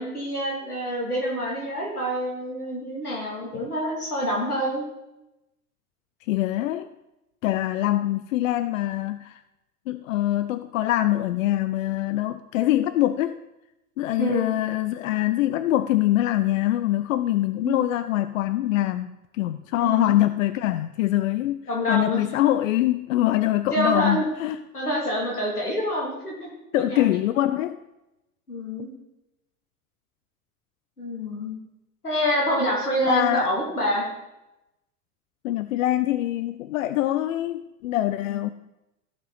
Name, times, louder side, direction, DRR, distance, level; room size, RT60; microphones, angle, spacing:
voice 1, 0.0-4.8 14.2-14.5 17.6-17.9 19.8-20.1 21.7-22.2 23.7-24.3 24.7-27.1 28.5-28.9 31.0-31.6 32.0-34.1 38.2-38.5, equal, 90° left, -3 dB, 2.7 m, -27 dB
voice 2, 6.3-6.9 7.4-9.4 9.9-13.4 14.0-24.6 26.7-27.8 33.0-33.5 35.4-38.5, left 14 dB, 65° left, 12 dB, 0.5 m, -24 dB
15.0 x 5.6 x 4.0 m, 0.93 s
figure-of-eight pair, 80°, 44 cm